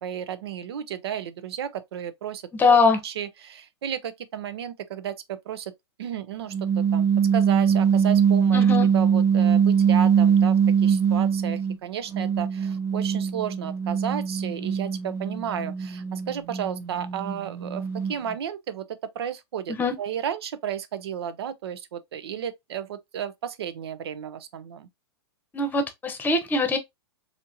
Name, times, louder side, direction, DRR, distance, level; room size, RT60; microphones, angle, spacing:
voice 1, 0.0-2.8 3.0-5.7 6.0-8.6 8.9-18.9 19.1-24.9, right 9 dB, 70° right, 0.6 m, -33 dB
voice 2, 2.5-3.0 8.5-8.9 19.7-20.0 25.5-26.8, left 4 dB, 15° left, 0.9 m, -22 dB
sound 1, 6.5-11.8 12.1-18.4, right 7 dB, 15° right, 0.8 m, -22 dB
4.3 x 2.9 x 2.6 m
hypercardioid pair, 115°, 14 cm